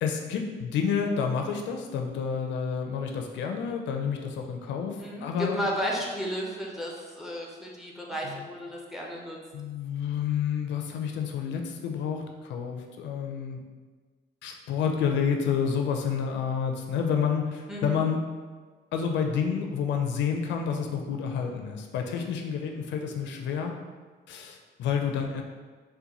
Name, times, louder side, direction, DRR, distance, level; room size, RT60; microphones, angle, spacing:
voice 1, 0.0-5.6 8.2-8.4 9.5-13.6 14.4-18.2 18.9-23.8 24.3-25.4, left 7 dB, 70° left, 2 dB, 0.4 m, -29 dB
voice 2, 5.0-9.4 17.7-18.0, equal, ahead, -2 dB, 0.4 m, -33 dB
3.8 x 2.1 x 2.9 m, 1.4 s
cardioid pair, 140°, 19 cm